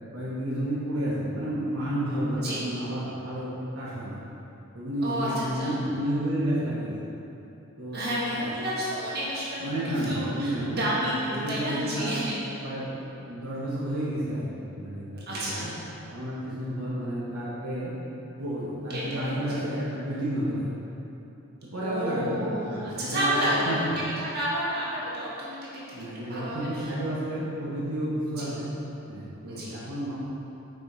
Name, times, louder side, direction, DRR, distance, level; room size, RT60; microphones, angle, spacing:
voice 1, 0.1-4.2 4.7-6.9 7.8-8.0 8.3-8.4 9.6-10.8 11.3-12.3 12.6-15.7 16.1-17.9 18.4-20.7 21.7-23.9 25.9-28.7 29.1-30.1, right 1 dB, 70° right, -8 dB, 1.2 m, -31 dB
voice 2, 5.0-5.7 7.9-9.6 9.9-12.5 15.3-15.7 18.9-19.5 21.8-23.7 24.1-25.7 26.3-26.9 28.4-28.5 29.5-29.8, right 1 dB, 45° right, -7 dB, 1.5 m, -30 dB
6.3 x 5.2 x 4.0 m, 3.0 s
head